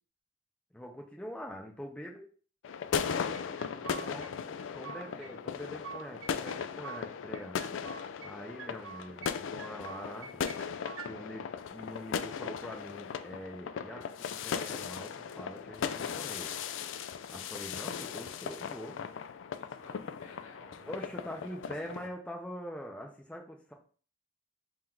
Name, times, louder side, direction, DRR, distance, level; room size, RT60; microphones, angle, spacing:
voice 1, 0.7-2.3 3.9-4.3 4.7-7.6 8.2-10.4 11.0-16.6 17.3-19.0 20.9-23.7, equal, 5° left, 0 dB, 0.5 m, -44 dB
sound 1, 2.6-22.1, left 7 dB, 70° left, 0.3 m, -38 dB
sound 2, 3.3-4.3 4.6-5.3 5.6-7.0 7.3-8.3 8.6-9.3 9.6-11.1, right 6 dB, 75° right, 0.5 m, -46 dB
voice 2, 3.6-4.1 4.9-5.3 19.6-22.1, left 2 dB, 85° left, -2 dB, 1.5 m, -56 dB
3.8 x 2.6 x 4.5 m, 0.40 s
head